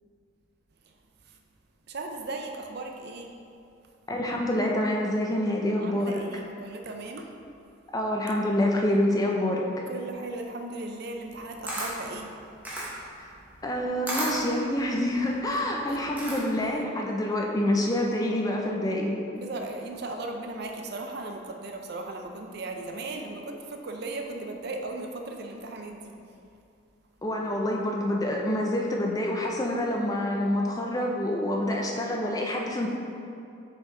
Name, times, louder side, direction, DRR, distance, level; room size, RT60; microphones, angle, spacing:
voice 1, 1.9-3.3 5.8-7.3 9.9-12.3 15.9-16.0 19.4-26.1, right 2 dB, 50° right, 3 dB, 0.5 m, -37 dB
voice 2, 4.1-6.2 7.9-9.7 13.2-13.3 13.6-19.2 27.2-32.9, left 1 dB, 15° left, -1 dB, 0.5 m, -27 dB
Camera, 11.3-16.7, right 1 dB, 10° right, 0.9 m, -35 dB
6.0 x 4.6 x 3.8 m, 2.5 s
head